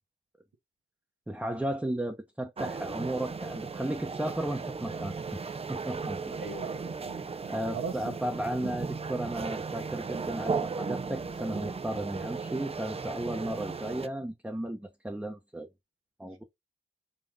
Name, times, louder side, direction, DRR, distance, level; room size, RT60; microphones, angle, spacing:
voice 1, 1.3-6.3 7.5-15.7 16.2-16.4, right 1 dB, 5° right, 0.8 m, -35 dB
sound 1, 2.6-14.1, right 4 dB, 30° right, 0.5 m, -36 dB
voice 2, 6.4-8.2, right 5 dB, 80° right, 1.1 m, -39 dB
3.8 x 3.0 x 3.5 m
cardioid pair, 70°, 21 cm